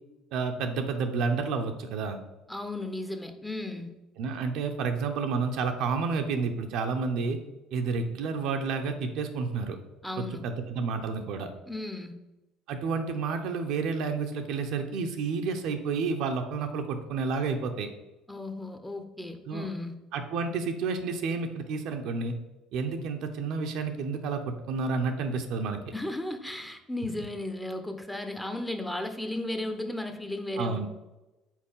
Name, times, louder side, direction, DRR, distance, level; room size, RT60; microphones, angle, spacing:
voice 1, 0.3-2.2 4.2-7.4 7.7-9.8 10.2-11.5 12.7-17.9 19.5-19.7 20.1-22.3 22.7-25.8 30.5-30.9, right 4 dB, 65° right, 5 dB, 0.7 m, -30 dB
voice 2, 2.5-3.9 10.0-10.4 11.7-12.1 18.3-19.9 25.9-30.9, left 1 dB, 5° left, 7 dB, 0.8 m, -35 dB
4.6 x 4.2 x 5.5 m, 1.0 s
hypercardioid pair, 70°, 0 cm